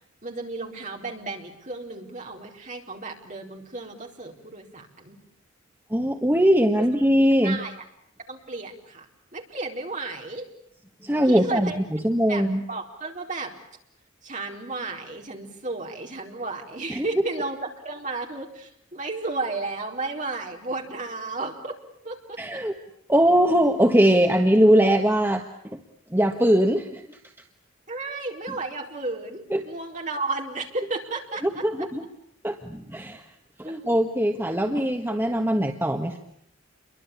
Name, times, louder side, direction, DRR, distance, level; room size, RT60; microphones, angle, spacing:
voice 1, 0.2-5.2 7.4-7.7 8.3-9.1 9.3-10.5 11.2-11.8 12.3-13.5 14.2-21.8 22.0-22.6 27.9-31.9 33.6-33.7, right 3 dB, 35° right, 1 dB, 4.4 m, -33 dB
voice 2, 5.9-7.6 11.0-12.6 16.9-17.0 22.4-22.7 23.1-25.4 25.7-25.8 26.1-27.0 29.5-29.7 31.6-32.0 32.4-33.2 33.6-36.2, equal, 10° right, 4 dB, 1.4 m, -21 dB
29.0 x 23.5 x 8.6 m, 0.68 s
head